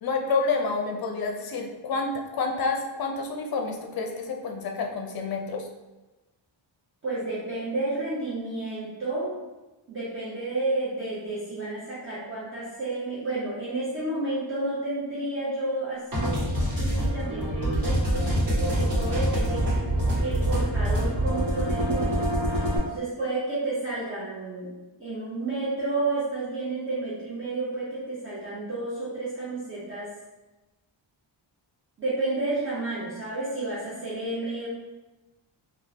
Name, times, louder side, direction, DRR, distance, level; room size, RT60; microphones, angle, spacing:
voice 1, 0.0-5.7, left 4 dB, 50° left, 3 dB, 0.5 m, -29 dB
voice 2, 7.0-9.3 9.9-16.4 16.8-19.6 20.2-22.2 22.9-24.7 25.0-30.1 32.0-34.7, right 2 dB, 25° right, -10 dB, 0.7 m, -31 dB
sound 1, 16.1-22.8, equal, 45° right, 1.4 m, -25 dB
3.7 x 2.3 x 2.7 m, 1.1 s
wide cardioid pair, 145°, 47 cm